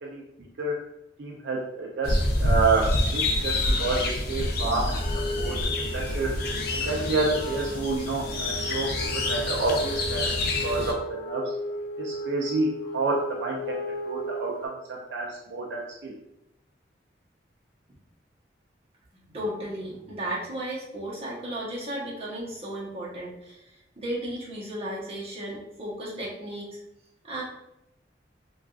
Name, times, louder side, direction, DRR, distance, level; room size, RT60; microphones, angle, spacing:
voice 1, 1.2-2.8 3.1-5.0 5.4-5.6 5.9-6.3 6.9-10.3 10.6-10.9 11.3-11.4 12.0-13.8 14.0-16.1, right 3 dB, 65° right, -2 dB, 0.4 m, -28 dB
sound 1, 2.0-10.9, left 1 dB, 55° left, 0.5 m, -27 dB
Wind instrument woodwind instrument, 4.9-14.7, equal, 15° left, 1.4 m, -35 dB
voice 2, 19.1-26.8 27.2-27.4, right 1 dB, 35° right, -6 dB, 0.9 m, -35 dB
3.4 x 2.3 x 2.3 m, 0.84 s
head